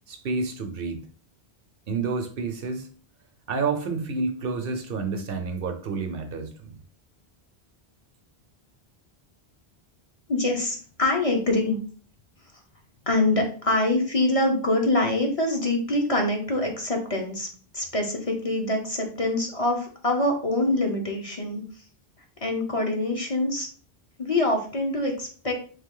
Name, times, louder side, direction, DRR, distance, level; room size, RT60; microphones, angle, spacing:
voice 1, 0.1-1.0 1.9-2.9 3.5-6.7, right 4 dB, 65° right, 0.8 m, -29 dB
voice 2, 10.3-11.8 13.1-17.5 17.7-21.6 22.4-23.7 24.2-25.5, left 2 dB, 35° left, 0.8 m, -25 dB
3.7 x 3.4 x 3.7 m
omnidirectional pair, 1.1 m